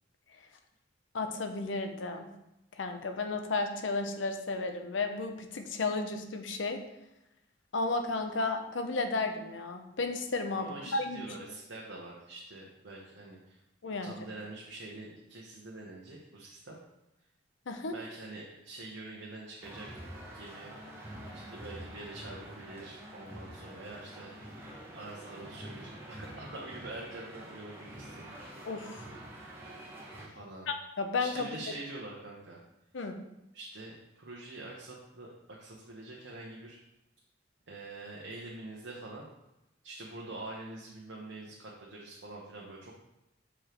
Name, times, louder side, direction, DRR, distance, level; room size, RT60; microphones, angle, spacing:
voice 1, 1.1-2.3 2.7-6.8 7.7-11.3 13.8-14.1 17.7-17.9 28.6-29.0 30.7-31.6 32.9-33.1, left 3 dB, 90° left, 6 dB, 0.7 m, -33 dB
voice 2, 10.5-13.6 14.0-16.8 17.9-20.0 20.3-20.7 21.3-24.3 24.9-28.3 30.3-30.7 31.2-32.6 33.5-36.8 37.7-39.3 39.8-42.9, right 2 dB, 75° right, -3 dB, 0.9 m, -45 dB
sound 1, 19.6-30.3, right 1 dB, 15° right, 1.4 m, -46 dB
6.2 x 5.0 x 3.0 m, 0.91 s
head